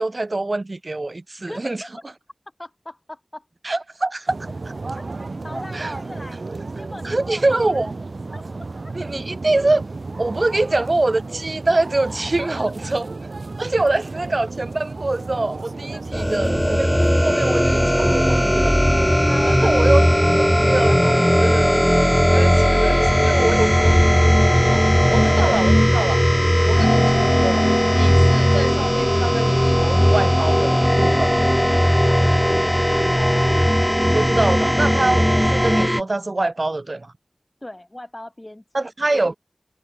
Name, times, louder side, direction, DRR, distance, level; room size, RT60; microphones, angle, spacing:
voice 1, 0.0-1.8 3.6-4.4 5.7-5.9 7.0-7.9 8.9-9.8 10.2-13.1 13.6-19.1 19.5-20.0 20.4-20.9 21.4-21.8 22.3-23.7 25.1-26.2 26.6-31.4 34.1-37.1 38.7-39.4, right 2 dB, 55° right, 1.2 m, -24 dB
voice 2, 1.5-1.9 2.6-3.5 5.4-6.4 6.7-7.9 8.3-8.9 12.4-13.0 15.9-16.0 19.3-20.5 20.8-21.2 22.9-24.1 24.7-25.9 26.6-27.1 32.1-33.7 37.6-38.8, left 1 dB, 30° left, 2.9 m, -40 dB
sound 1, 4.3-21.3, right 3 dB, 80° right, 1.0 m, -33 dB
sound 2, 16.1-36.0, equal, 5° left, 0.4 m, -17 dB
wide cardioid pair, 45°, 0 cm